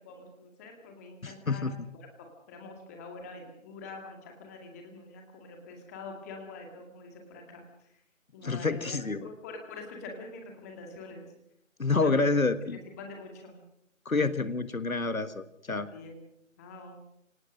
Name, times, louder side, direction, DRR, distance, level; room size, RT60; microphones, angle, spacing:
voice 1, 0.0-1.7 1.9-2.1 2.5-7.6 8.3-11.3 12.0-12.1 12.7-13.6 15.7-16.2 16.6-17.0, left 3 dB, 10° left, 3 dB, 2.1 m, -45 dB
voice 2, 1.2-1.7 8.4-9.3 11.8-12.8 14.0-15.9, left 3 dB, 80° left, 12 dB, 1.7 m, -28 dB
25.5 x 18.0 x 6.3 m, 0.79 s
figure-of-eight pair, 160°, 41 cm